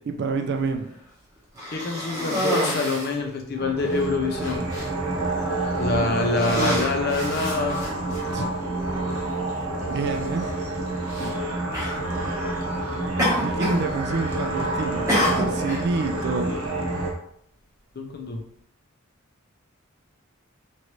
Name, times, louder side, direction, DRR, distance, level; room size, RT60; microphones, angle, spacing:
voice 1, 0.2-0.9 8.3-8.5 9.8-10.5 13.4-16.5, right 4 dB, 50° right, 6 dB, 0.3 m, -28 dB
Cough, 1.5-3.2 3.9-4.0 4.4-4.9 5.6-5.9 6.3-8.2 9.2-9.3 11.1-11.3 11.7-12.0 13.2-13.9 14.1-14.6 15.1-15.8, equal, 15° right, 0.9 m, -27 dB
voice 2, 1.7-4.6 5.8-7.8 8.4-8.5 11.2-11.3 18.0-18.4, left 3 dB, 45° left, 3 dB, 0.5 m, -26 dB
sound 1, 3.5-17.1, right 2 dB, 80° right, 0.8 m, -28 dB
3.0 x 2.6 x 3.0 m, 0.70 s
head